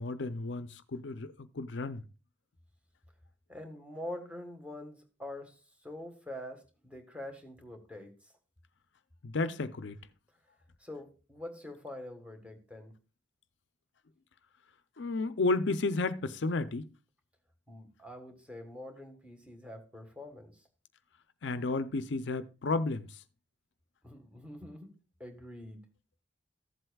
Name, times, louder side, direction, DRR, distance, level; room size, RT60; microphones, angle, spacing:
voice 1, 0.0-2.0 9.2-10.0 15.0-16.9 21.4-23.1, left 3 dB, 70° left, 0.6 m, -32 dB
voice 2, 3.5-8.3 10.8-13.0 17.7-20.6 24.0-24.9 25.2-25.9, left 1 dB, 5° right, 1.5 m, -45 dB
14.5 x 7.8 x 2.3 m
head